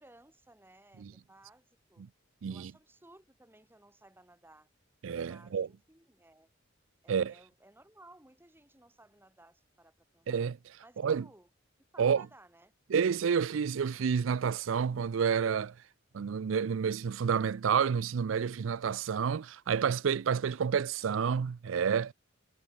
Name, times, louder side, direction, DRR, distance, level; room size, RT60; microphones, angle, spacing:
voice 1, 0.0-2.1 2.5-4.7 5.3-6.5 7.0-10.5 10.8-11.5 11.9-12.7 19.7-19.8 20.7-21.1, right 1 dB, 10° right, 5.2 m, -59 dB
voice 2, 5.0-5.7 7.1-7.3 10.3-10.6 11.0-11.2 12.0-12.3 12.9-15.7 16.1-22.1, right 6 dB, 90° right, 0.4 m, -29 dB
head